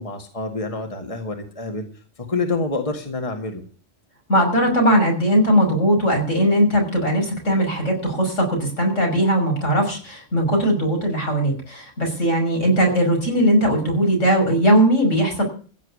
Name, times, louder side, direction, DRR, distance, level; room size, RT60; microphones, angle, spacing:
voice 1, 0.0-1.8 2.2-3.6, left 3 dB, 30° left, 4 dB, 2.1 m, -27 dB
voice 2, 4.3-15.4, equal, 80° left, 1 dB, 6.2 m, -19 dB
15.5 x 7.4 x 8.5 m, 0.40 s
omnidirectional pair, 1.3 m